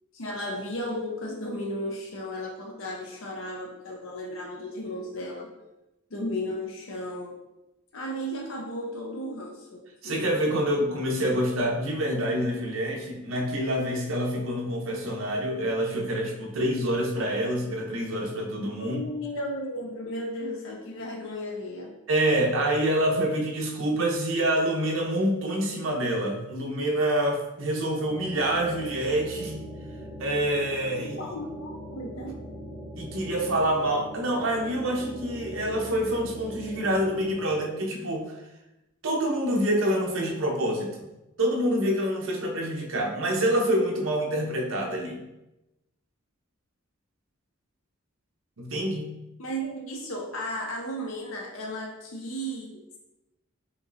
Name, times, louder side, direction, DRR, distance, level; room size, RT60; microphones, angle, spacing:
voice 1, 0.1-5.5 6.1-7.3 7.9-10.2 18.8-21.9 31.2-32.3 49.4-52.7, equal, 70° left, -1 dB, 0.7 m, -34 dB
voice 2, 10.0-19.0 22.1-29.6 30.2-31.2 33.0-38.2 39.0-41.1 41.4-45.2 48.6-49.1, right 1 dB, 70° right, 1 dB, 0.8 m, -26 dB
sound 1, 28.0-37.3, equal, 20° left, 1.2 m, -41 dB
5.2 x 3.0 x 2.6 m, 0.95 s
head